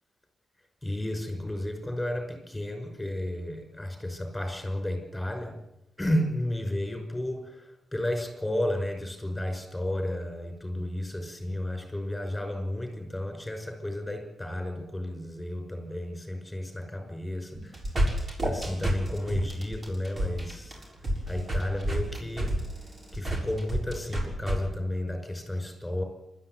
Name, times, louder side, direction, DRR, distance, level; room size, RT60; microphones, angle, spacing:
voice 1, 0.8-5.6 6.0-20.8 21.3-22.6 23.1-26.0, left 1 dB, 10° left, 4 dB, 5.9 m, -32 dB
sound 1, 17.5-24.6, right 1 dB, 30° right, 7.0 m, -29 dB
27.5 x 13.0 x 9.7 m, 0.85 s
wide cardioid pair, 130°, 0 cm